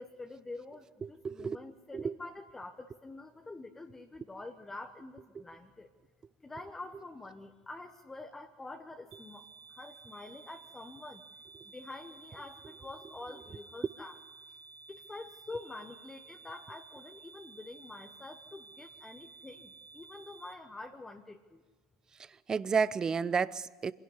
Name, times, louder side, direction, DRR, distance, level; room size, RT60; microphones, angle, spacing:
voice 1, 0.0-5.9 6.4-11.2 11.6-14.1 14.9-21.6, left 2 dB, 15° left, 1.2 m, -47 dB
voice 2, 1.0-1.6 1.9-2.2 5.3-5.4 22.2-23.9, right 5 dB, 30° right, 0.6 m, -32 dB
sound 1, 9.1-20.5, right 4 dB, 85° right, 1.1 m, -54 dB
25.0 x 11.0 x 9.8 m
hypercardioid pair, 85°, 2 cm